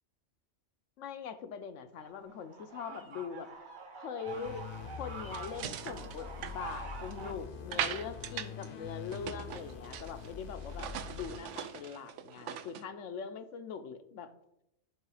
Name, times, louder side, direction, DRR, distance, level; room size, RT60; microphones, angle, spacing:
voice 1, 1.0-3.5 4.0-14.3, left 6 dB, 90° left, 10 dB, 1.0 m, -42 dB
sound 1, 1.9-7.3, right 5 dB, 45° right, 0.9 m, -47 dB
sound 2, 4.3-12.0, left 6 dB, 55° left, 0.8 m, -45 dB
sound 3, 5.3-7.2 7.7-8.7 8.9-10.3 10.6-12.8, right 9 dB, 80° right, 0.9 m, -40 dB
11.0 x 3.8 x 4.8 m, 0.82 s
omnidirectional pair, 1.2 m